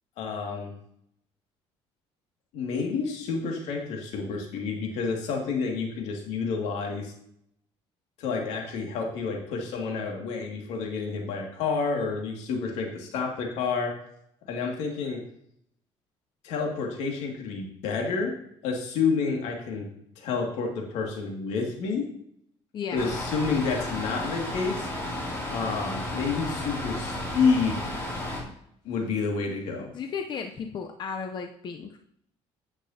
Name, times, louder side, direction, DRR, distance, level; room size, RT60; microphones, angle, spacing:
voice 1, 0.2-0.7 2.5-7.1 8.2-13.9 14.4-15.2 16.4-18.3 18.6-19.9 20.2-22.1 22.9-24.9 25.5-27.8 28.4-28.5 28.8-29.9, left 5 dB, 80° left, 1 dB, 2.3 m, -29 dB
voice 2, 22.7-23.1 29.9-32.0, left 6 dB, 45° left, 5 dB, 0.7 m, -34 dB
sound 1, 23.0-28.4, left 1 dB, 25° left, 2.7 m, -33 dB
10.0 x 8.3 x 2.8 m, 0.71 s
cardioid pair, 115°, 11 cm